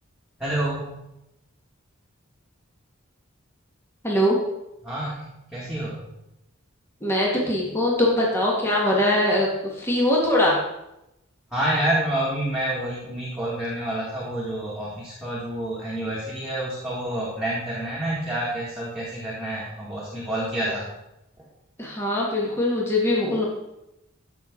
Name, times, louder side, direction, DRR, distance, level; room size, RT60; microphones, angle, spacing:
voice 1, 0.4-0.9 4.8-6.0 11.5-20.9 21.4-21.5, right 1 dB, 5° right, -8 dB, 2.3 m, -28 dB
voice 2, 4.0-4.4 7.0-10.6 21.8-23.4, left 1 dB, 10° left, -4 dB, 2.0 m, -22 dB
14.5 x 6.1 x 4.0 m, 0.89 s
head